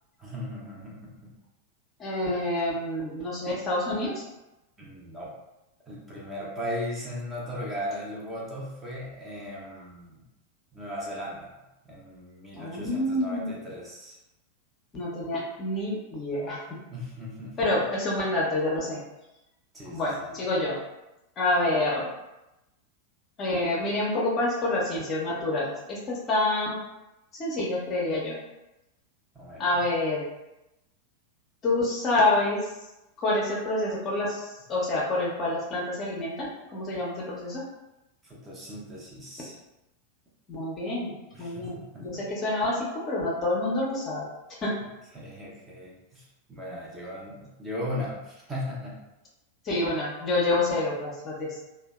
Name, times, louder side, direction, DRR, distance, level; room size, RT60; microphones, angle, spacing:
voice 1, 0.2-1.3 4.8-5.3 5.9-10.2 10.7-14.2 16.9-17.5 19.7-20.4 29.3-29.7 38.2-39.6 41.3-42.2 45.1-48.9, left 1 dB, 15° right, -5 dB, 0.7 m, -37 dB
voice 2, 2.0-4.2 12.5-13.5 14.9-16.6 17.6-19.0 19.8-20.8 21.4-22.1 23.4-26.8 27.3-28.4 29.6-30.2 31.6-32.6 33.2-37.6 40.5-44.2 44.6-44.7 49.6-51.6, left 2 dB, 30° left, -3 dB, 0.6 m, -27 dB
2.6 x 2.1 x 2.3 m, 0.96 s
figure-of-eight pair, 90°, 0 cm